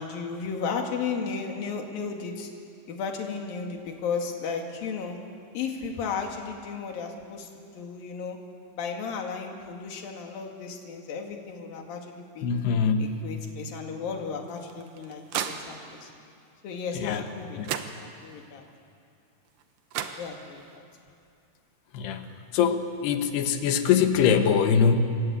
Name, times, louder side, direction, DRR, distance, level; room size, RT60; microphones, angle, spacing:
voice 1, 0.0-2.5 2.9-5.2 5.5-7.5 7.8-8.4 8.8-12.5 13.0-16.1 16.6-18.6 20.2-20.8, left 5 dB, 60° left, 2 dB, 3.8 m, -34 dB
voice 2, 12.4-13.1 16.9-17.2 17.6-17.7 21.9-22.3 22.5-25.0, left 6 dB, 75° left, 7 dB, 3.3 m, -23 dB
sound 1, 14.5-16.1 17.3-17.4 17.6-18.5 19.6-19.7 19.9-20.8, right 8 dB, 70° right, 2.3 m, -35 dB
28.0 x 20.5 x 8.4 m, 2.6 s
omnidirectional pair, 4.9 m